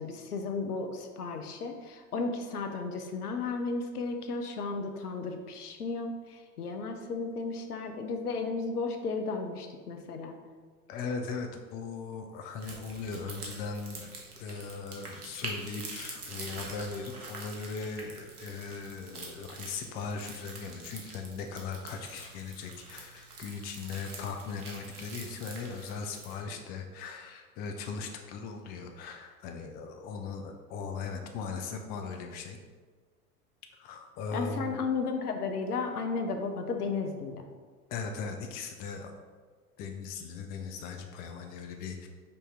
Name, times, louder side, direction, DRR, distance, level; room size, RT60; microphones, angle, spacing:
voice 1, 0.0-10.3 34.3-37.4, left 4 dB, 85° left, 5 dB, 0.6 m, -34 dB
voice 2, 10.9-14.1 14.4-32.6 33.7-34.7 37.9-39.1 39.8-42.1, left 5 dB, 25° left, 4 dB, 0.3 m, -39 dB
sound 1, 12.6-26.4, right 3 dB, 80° right, 1.0 m, -45 dB
5.3 x 2.7 x 3.4 m, 1.5 s
figure-of-eight pair, 80°, 44 cm